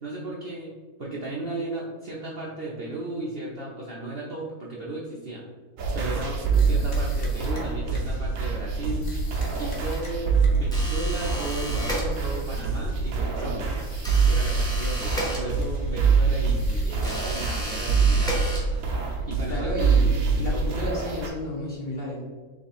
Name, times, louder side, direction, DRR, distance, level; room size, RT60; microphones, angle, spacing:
voice 1, 0.0-5.4 5.9-9.1 9.6-13.7 14.3-18.3 19.3-19.7 20.3-20.7, right 2 dB, 55° right, -4 dB, 0.7 m, -35 dB
sound 1, 5.8-21.3, right 4 dB, 85° right, 1.3 m, -25 dB
sound 2, 6.5-8.3 9.0-10.7 11.4-12.8 13.8-15.4 15.6-15.9 16.6-18.5, left 2 dB, 65° left, 1.4 m, -48 dB
sound 3, 10.7-12.5 14.0-15.9 17.0-19.1, right 1 dB, 5° left, 0.6 m, -33 dB
voice 2, 19.5-20.1 20.4-22.2, left 1 dB, 40° left, -5 dB, 0.9 m, -31 dB
3.7 x 3.2 x 4.1 m, 1.5 s
omnidirectional pair, 1.6 m